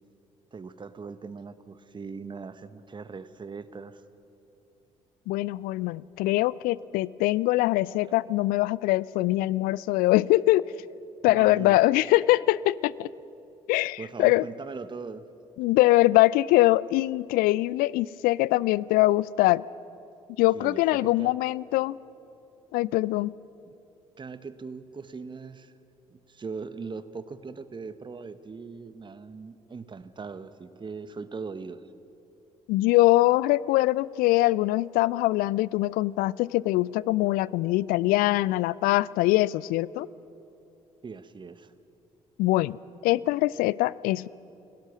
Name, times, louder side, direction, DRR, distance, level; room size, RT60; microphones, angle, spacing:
voice 1, 0.5-4.0 11.3-11.8 14.0-15.2 20.5-21.3 23.6-23.7 24.2-25.7 26.1-31.8 41.0-41.7, right 4 dB, 30° right, 12 dB, 1.1 m, -40 dB
voice 2, 5.3-10.6 11.2-13.1 13.7-14.4 15.6-19.6 20.4-22.0 22.7-23.3 32.7-40.1 42.4-42.8 43.0-44.3, left 18 dB, 60° left, 22 dB, 0.4 m, -23 dB
29.5 x 18.0 x 6.1 m, 2.8 s
figure-of-eight pair, 45°, 16 cm